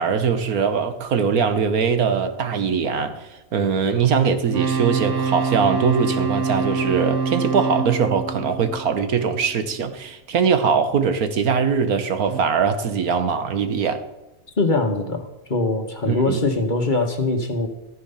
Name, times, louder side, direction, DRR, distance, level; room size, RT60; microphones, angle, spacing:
voice 1, 0.0-14.0 16.0-16.4, right 6 dB, 75° right, 1.6 m, -21 dB
sound 1, 4.4-9.5 12.3-12.4, right 5 dB, 55° right, 1.6 m, -25 dB
voice 2, 14.6-17.7, left 2 dB, 35° left, 1.4 m, -22 dB
14.0 x 10.5 x 5.6 m
omnidirectional pair, 1.5 m